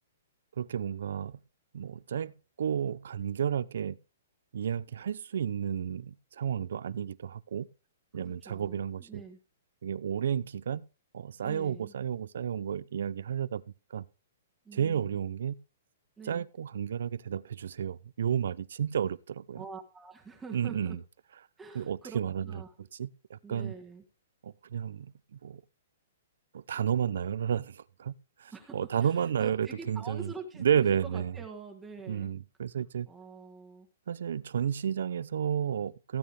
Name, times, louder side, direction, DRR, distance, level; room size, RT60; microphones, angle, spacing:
voice 1, 0.6-1.4 1.7-2.3 2.6-4.0 4.5-7.7 8.1-9.2 9.8-10.8 11.1-13.6 13.9-14.0 14.7-15.6 16.2-19.6 20.5-21.0 21.7-22.5 23.0-23.7 24.4-25.6 26.5-28.1 28.4-30.3 30.6-31.4 32.1-33.1 34.1-36.2, right 8 dB, 70° right, 0.7 m, -32 dB
voice 2, 8.1-9.4 11.4-11.9 14.6-15.2 16.2-16.5 19.5-21.0 21.6-22.7 23.4-24.0 28.5-32.3 33.1-33.9, right 4 dB, 10° right, 1.5 m, -46 dB
15.5 x 9.0 x 3.4 m
hypercardioid pair, 165°, 0 cm